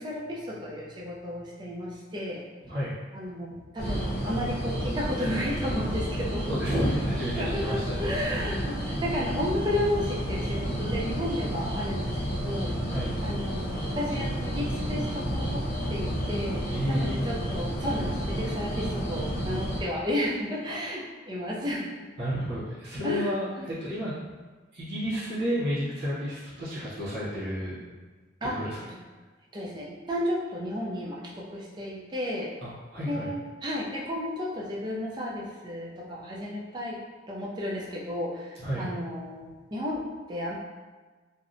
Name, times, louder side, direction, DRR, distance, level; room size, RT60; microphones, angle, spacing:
voice 1, 0.0-2.4 3.1-6.5 7.4-12.2 12.4-12.7 13.2-16.6 16.9-21.9 23.0-23.3 23.6-23.7 28.4-28.6 28.9-29.0 29.5-32.5 33.0-37.0 37.3-40.6, left 1 dB, 25° right, -4 dB, 0.4 m, -33 dB
sound 1, 3.8-19.8, equal, 55° left, 0.6 m, -31 dB
voice 2, 6.5-8.0 12.8-13.2 16.7-17.3 20.7-20.8 22.2-24.1 24.7-27.8 28.4-28.8 32.6-33.3 38.6-38.9, equal, 60° right, -9 dB, 0.8 m, -31 dB
2.6 x 2.0 x 2.5 m, 1.4 s
head